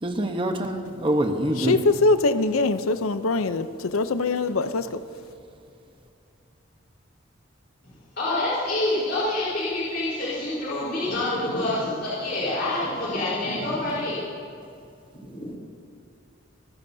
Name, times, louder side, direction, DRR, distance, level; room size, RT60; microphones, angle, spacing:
voice 1, 0.0-1.8, right 1 dB, 25° right, 4 dB, 1.0 m, -25 dB
voice 2, 1.6-5.0, left 3 dB, 90° left, 11 dB, 0.7 m, -23 dB
voice 3, 8.2-14.2 15.3-15.6, left 2 dB, 50° left, -9 dB, 4.2 m, -27 dB
25.5 x 14.5 x 2.8 m, 2.4 s
head